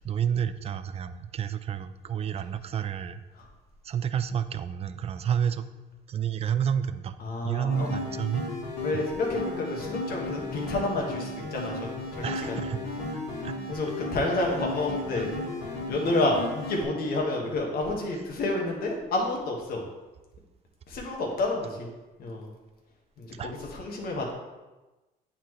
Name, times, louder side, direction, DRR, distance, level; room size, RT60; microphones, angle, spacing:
voice 1, 0.0-3.2 3.8-5.7 6.1-7.2 7.4-8.5 8.9-9.0 12.2-12.8 13.4-13.5 15.1-15.3 23.4-23.5, right 8 dB, 35° right, 11 dB, 0.4 m, -30 dB
voice 2, 7.2-7.9 8.8-12.8 13.7-15.3 15.9-19.8 20.9-21.9 22.2-22.5 23.2-24.3, left 2 dB, 65° left, -1 dB, 1.6 m, -29 dB
sound 1, 7.7-16.8, left 2 dB, 90° left, 2.2 m, -35 dB
9.1 x 4.3 x 3.1 m, 1.1 s
cardioid pair, 110°, 17 cm